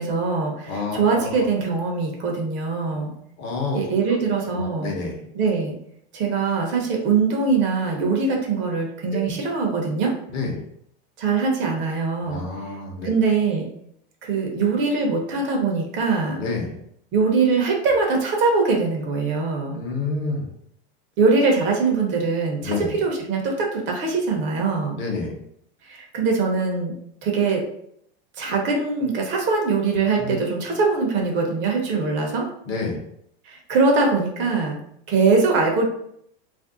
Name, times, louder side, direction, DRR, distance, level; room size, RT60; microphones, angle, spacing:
voice 1, 0.0-3.1 3.7-4.9 5.3-5.8 6.1-10.1 11.2-12.4 13.0-13.7 14.2-16.4 17.1-19.8 21.2-25.0 25.8-26.9 27.2-27.6 28.4-32.5 33.4-34.8 35.1-35.8, right 4 dB, 40° right, 1 dB, 0.7 m, -22 dB
voice 2, 0.7-1.3 3.4-3.8 4.1-4.2 4.5-5.2 9.1-9.3 10.3-10.5 12.3-13.1 16.3-16.7 19.8-20.5 22.6-22.9 25.0-25.3 30.2-30.3 32.7-33.0, left 3 dB, 40° left, 0 dB, 0.8 m, -28 dB
2.5 x 2.1 x 3.7 m, 0.70 s
supercardioid pair, 130°, 30 cm